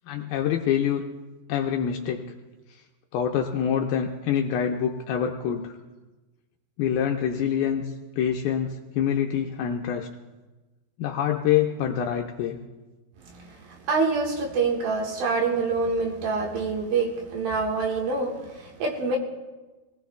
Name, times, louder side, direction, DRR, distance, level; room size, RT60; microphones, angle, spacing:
voice 1, 0.1-1.0 1.5-2.2 3.1-5.7 6.8-7.8 8.2-10.1 11.0-12.6, left 9 dB, 80° left, 2 dB, 2.2 m, -25 dB
voice 2, 13.2-19.2, right 4 dB, 65° right, 0 dB, 3.1 m, -26 dB
23.5 x 18.5 x 2.3 m, 1.2 s
omnidirectional pair, 4.9 m